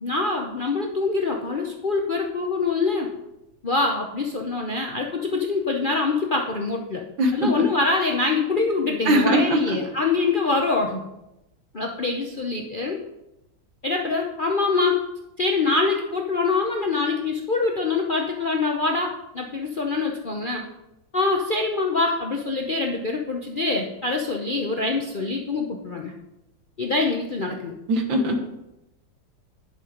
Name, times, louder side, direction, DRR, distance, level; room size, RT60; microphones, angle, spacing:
voice 1, 0.0-3.1 3.6-7.0 7.3-11.0 11.7-13.0 13.8-15.0 15.4-20.7 21.1-26.1 26.8-27.7, left 3 dB, 55° left, 1 dB, 0.5 m, -24 dB
voice 2, 7.2-7.5 9.1-9.6 27.9-28.4, right 1 dB, 85° right, 5 dB, 2.0 m, -20 dB
10.5 x 5.6 x 5.0 m, 0.90 s
omnidirectional pair, 2.0 m